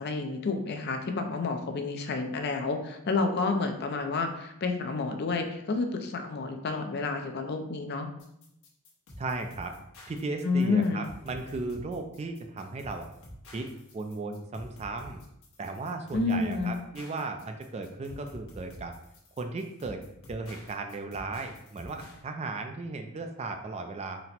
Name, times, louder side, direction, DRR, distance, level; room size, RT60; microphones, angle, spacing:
voice 1, 0.0-8.1 10.4-11.0 16.1-16.8, left 3 dB, 50° left, 5 dB, 0.5 m, -29 dB
sound 1, 8.2-22.2, equal, 70° left, 1.0 m, -49 dB
voice 2, 9.2-9.7 10.1-13.1 13.5-13.7 13.9-15.2 15.6-18.9 19.4-20.0 20.3-24.2, right 3 dB, 30° right, 6 dB, 0.3 m, -36 dB
4.1 x 2.1 x 4.2 m, 0.79 s
head